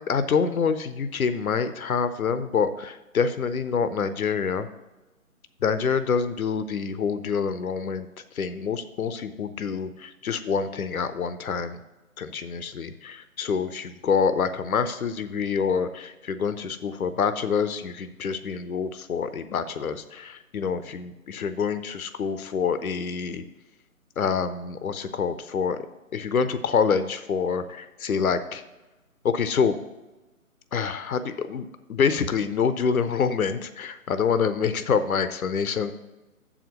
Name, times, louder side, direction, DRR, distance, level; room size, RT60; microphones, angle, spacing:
voice 1, 0.1-4.7 5.6-8.1 8.3-11.8 12.2-23.4 24.2-25.8 26.1-28.6 29.2-29.7 30.7-35.9, left 6 dB, 75° left, 11 dB, 0.7 m, -26 dB
7.1 x 5.0 x 6.8 m, 1.1 s
figure-of-eight pair, 150°, 43 cm